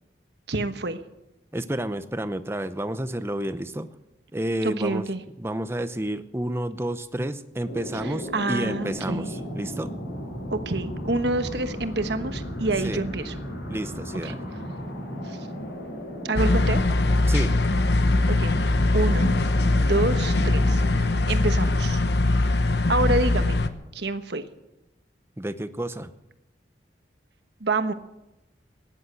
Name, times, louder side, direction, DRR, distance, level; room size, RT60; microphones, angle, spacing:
voice 1, 0.5-1.0 4.6-5.2 8.0-9.3 10.5-13.3 14.2-14.3 15.2-15.4 16.2-16.8 18.3-18.6 18.9-19.3 19.9-22.0 22.9-23.6 23.9-24.4 27.6-27.9, right 2 dB, 70° right, 9 dB, 1.2 m, -27 dB
voice 2, 1.5-3.9 4.3-5.1 5.4-9.9 12.8-13.0 13.7-14.5 17.3-17.6 25.4-26.1, right 1 dB, 15° right, 11 dB, 0.7 m, -30 dB
sound 1, 7.6-21.1, equal, 85° left, 7.6 m, -35 dB
sound 2, 16.4-23.7, left 2 dB, 65° left, 1.0 m, -21 dB
16.5 x 11.0 x 7.9 m, 0.92 s
head